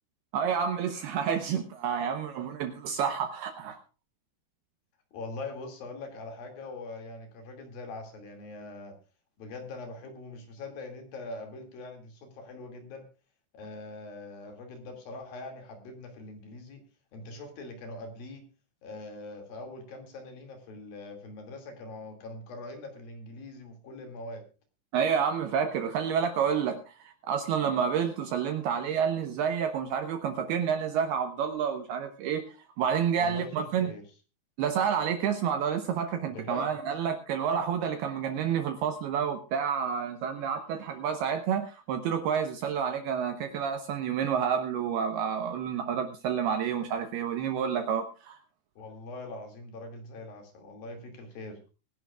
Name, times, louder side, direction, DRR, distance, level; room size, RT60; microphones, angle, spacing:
voice 1, 0.3-3.8 24.9-32.4 32.8-33.9 34.6-48.4, right 7 dB, 75° right, 7 dB, 2.5 m, -29 dB
voice 2, 5.1-9.0 9.4-13.0 13.5-16.8 17.1-18.4 18.8-24.4 33.2-34.0 36.3-36.7 48.8-51.6, left 2 dB, 55° left, 5 dB, 3.7 m, -42 dB
23.5 x 11.0 x 2.4 m, 0.33 s
omnidirectional pair, 5.5 m